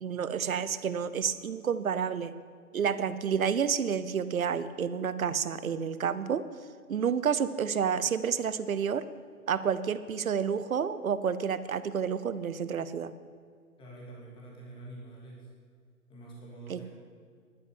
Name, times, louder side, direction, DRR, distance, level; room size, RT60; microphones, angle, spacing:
voice 1, 0.0-2.3 2.7-6.4 6.9-9.1 9.5-13.1 16.7-16.8, right 7 dB, 65° right, 14 dB, 0.9 m, -30 dB
voice 2, 13.8-15.5 16.1-16.8, right 2 dB, 10° left, -4 dB, 2.7 m, -46 dB
11.5 x 9.4 x 8.5 m, 2.1 s
figure-of-eight pair, 135°, 44 cm